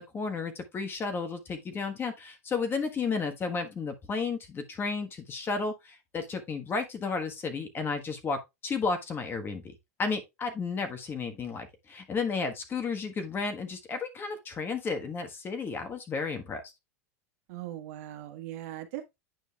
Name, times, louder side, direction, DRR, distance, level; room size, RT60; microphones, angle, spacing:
voice 1, 0.0-16.6, left 4 dB, 25° left, 1.3 m, -33 dB
voice 2, 17.5-19.0, right 13 dB, 65° right, 1.4 m, -39 dB
9.1 x 5.2 x 2.3 m
hypercardioid pair, 115°, 8 cm